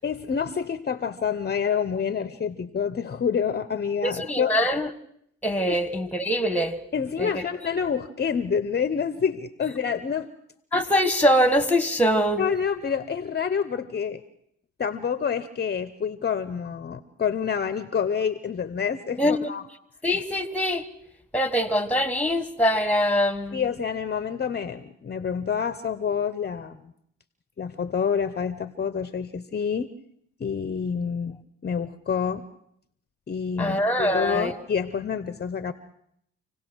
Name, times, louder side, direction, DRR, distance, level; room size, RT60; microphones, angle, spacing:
voice 1, 0.0-4.6 5.7-5.8 6.9-10.3 12.4-14.2 14.8-19.6 23.5-26.9 27.6-29.9 30.4-31.4 31.6-32.5 33.3-35.7, left 7 dB, 35° left, 0.8 m, -27 dB
voice 2, 4.0-4.9 5.4-6.8 7.2-7.4 10.7-12.4 19.2-19.5 20.0-20.8 21.3-23.6 33.6-34.5, equal, 5° left, 1.5 m, -23 dB
27.0 x 17.0 x 6.3 m
cardioid pair, 90°, 30 cm